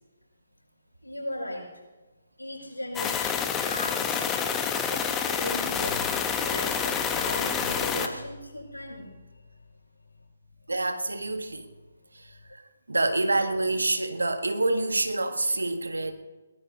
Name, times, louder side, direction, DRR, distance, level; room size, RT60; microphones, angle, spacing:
voice 1, 1.0-1.7 2.4-4.3 4.9-9.2, left 1 dB, 80° left, -2 dB, 6.7 m, -37 dB
sound 1, 2.9-8.1, left 7 dB, 15° left, 1.0 m, -28 dB
voice 2, 10.7-11.7 12.1-12.6 12.9-16.1, right 2 dB, 75° right, 7 dB, 1.5 m, -27 dB
22.0 x 18.5 x 2.9 m, 1.2 s
figure-of-eight pair, 140°, 0 cm